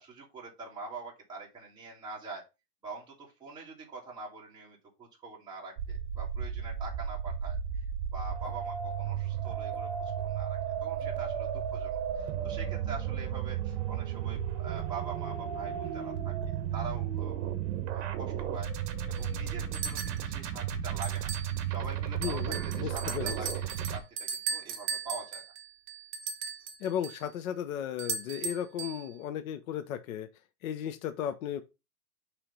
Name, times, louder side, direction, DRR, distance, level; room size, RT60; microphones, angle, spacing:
voice 1, 0.0-2.5 2.8-7.6 8.1-11.9 12.2-17.4 17.9-18.7 19.1-21.3 21.7-25.4, right 4 dB, 10° right, 2.0 m, -44 dB
sound 1, 5.8-24.0, right 9 dB, 50° right, 1.2 m, -34 dB
sound 2, 19.2-19.3 19.7-20.2 21.0-21.5 21.8-21.9 22.2-27.2 28.0-29.0, right 6 dB, 35° right, 1.0 m, -37 dB
voice 2, 22.2-23.4 26.8-30.3 30.6-31.6, left 9 dB, 60° left, 0.9 m, -35 dB
5.9 x 3.3 x 5.5 m
hypercardioid pair, 150°, 47 cm